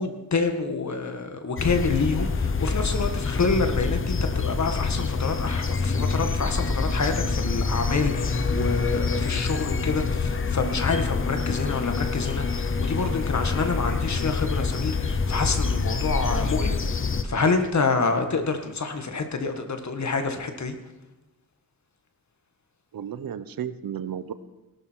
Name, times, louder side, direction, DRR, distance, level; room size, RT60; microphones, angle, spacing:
voice 1, 0.0-20.8, left 4 dB, 55° left, 6 dB, 1.7 m, -27 dB
sound 1, 1.6-17.2, left 4 dB, 35° left, 0.9 m, -26 dB
voice 2, 22.9-24.3, right 9 dB, 85° right, 13 dB, 0.8 m, -33 dB
18.5 x 12.5 x 4.6 m, 1.0 s
wide cardioid pair, 110°, 34 cm